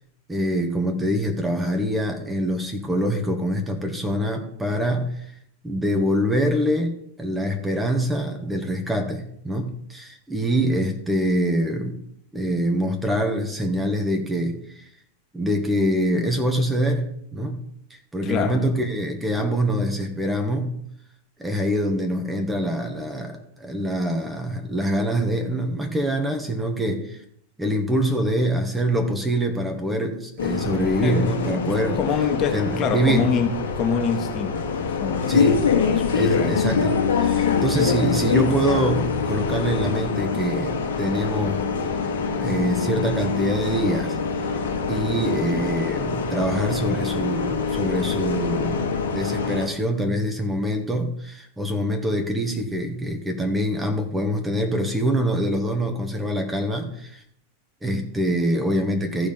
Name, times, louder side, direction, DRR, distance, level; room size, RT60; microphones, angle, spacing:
voice 1, 0.3-5.3 5.6-12.0 12.3-14.9 15.3-17.6 17.9-20.9 21.4-27.2 27.6-32.0 32.5-33.3 35.3-35.6 36.1-41.6 42.4-44.2 44.9-57.2 57.8-59.3, equal, 10° right, 4 dB, 1.5 m, -25 dB
voice 2, 18.2-18.7 31.0-31.3 32.0-36.8 37.4-37.5, left 6 dB, 30° left, 4 dB, 1.7 m, -26 dB
Bus, 30.4-49.7, left 5 dB, 65° left, 1.9 m, -24 dB
14.5 x 5.1 x 5.4 m, 0.69 s
figure-of-eight pair, 90°, 0 cm